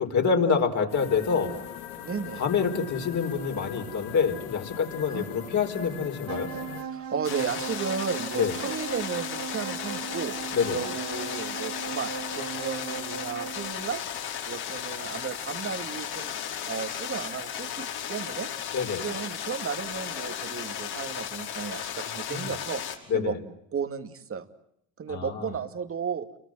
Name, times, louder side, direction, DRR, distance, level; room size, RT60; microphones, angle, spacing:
voice 1, 0.0-1.6 2.4-6.5 8.3-8.5 10.5-10.8 18.7-19.0 22.3-22.5 23.1-23.4 25.1-25.5, left 6 dB, 40° left, 3 dB, 4.7 m, -26 dB
sound 1, 0.9-6.8, left 10 dB, 80° left, 3.0 m, -41 dB
voice 2, 2.0-2.4 5.1-5.3 6.9-10.4 10.7-16.3 16.6-18.5 19.0-22.8 23.1-23.4 23.7-24.5 25.0-26.3, right 6 dB, 30° right, 8 dB, 2.3 m, -34 dB
sound 2, 6.3-13.8, right 8 dB, 50° right, 3.2 m, -37 dB
sound 3, 7.2-22.9, left 9 dB, 55° left, 5.5 m, -35 dB
30.0 x 24.0 x 7.7 m, 0.74 s
supercardioid pair, 100°, 45 cm